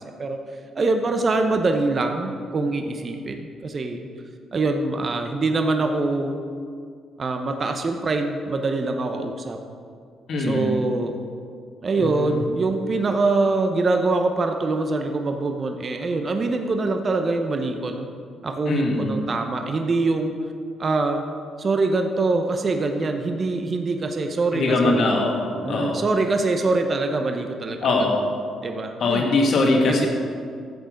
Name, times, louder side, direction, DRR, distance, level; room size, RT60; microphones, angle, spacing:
voice 1, 0.7-4.0 4.5-6.4 7.2-9.6 10.4-11.2 11.8-18.1 18.4-20.3 20.8-21.2 21.6-25.0 25.6-28.1 28.6-29.3 29.8-30.1, right 3 dB, 40° right, 5 dB, 0.9 m, -24 dB
voice 2, 10.3-10.8 12.0-12.3 18.7-19.2 24.5-25.4 25.7-26.0 27.8-28.3 29.0-30.1, left 2 dB, 65° left, 0 dB, 2.0 m, -21 dB
11.5 x 7.4 x 5.2 m, 2.2 s
cardioid pair, 90°, 0 cm